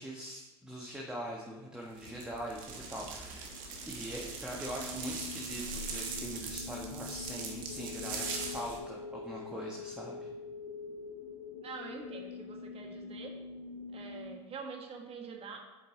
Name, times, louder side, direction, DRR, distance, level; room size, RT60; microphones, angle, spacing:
voice 1, 0.0-3.5 3.8-10.3, equal, 5° right, -3 dB, 1.2 m, -42 dB
sound 1, 2.0-8.8, right 4 dB, 60° right, 1.4 m, -41 dB
sound 2, 2.7-14.4, left 5 dB, 70° left, 0.6 m, -45 dB
voice 2, 11.6-13.3 13.9-15.6, right 5 dB, 40° right, 2 dB, 1.5 m, -45 dB
8.2 x 4.6 x 3.8 m, 1.1 s
hypercardioid pair, 75°, 16 cm